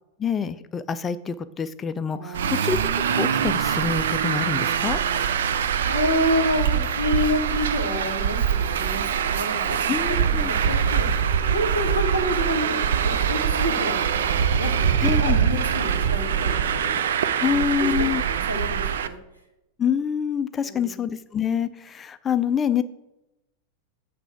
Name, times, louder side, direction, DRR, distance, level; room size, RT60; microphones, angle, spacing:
voice 1, 0.2-2.8 3.2-5.0 9.9-10.5 15.0-15.4 17.4-18.2 19.8-22.8, left 7 dB, 20° left, 13 dB, 0.4 m, -26 dB
voice 2, 2.1-2.7 5.8-9.9 10.2-11.1 11.4-16.9 17.4-19.2 20.6-21.0, equal, 85° right, 2 dB, 1.4 m, -29 dB
Traffic noise roadway noise, 2.3-19.1, right 8 dB, 60° right, 0.4 m, -23 dB
sound 1, 9.6-17.0, left 5 dB, 50° left, 0.7 m, -41 dB
7.9 x 3.3 x 5.8 m, 0.91 s
figure-of-eight pair, 90°, 0 cm